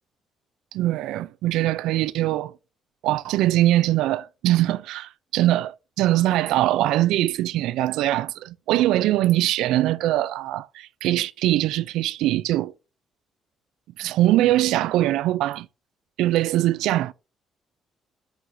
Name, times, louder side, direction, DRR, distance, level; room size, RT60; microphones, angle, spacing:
voice 1, 0.7-2.5 3.0-12.7 14.0-15.7 16.2-17.1, right 15 dB, 85° right, 0.4 m, -22 dB
9.6 x 6.1 x 2.7 m
cardioid pair, 80°, 0 cm